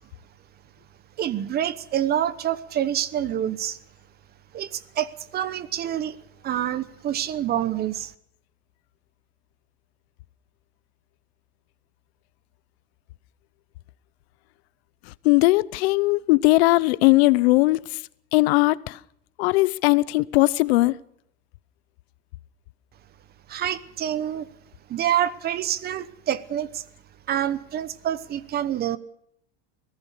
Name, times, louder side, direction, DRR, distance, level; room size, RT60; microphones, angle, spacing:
voice 1, 1.2-3.8 4.5-6.2 6.4-8.1 23.5-24.5 24.9-26.8 27.3-29.0, right 11 dB, 30° right, 1.0 m, -27 dB
voice 2, 15.2-17.8 18.3-19.0 19.4-21.0, left 21 dB, 85° left, 0.8 m, -19 dB
25.5 x 17.5 x 6.7 m
cardioid pair, 155°, 31 cm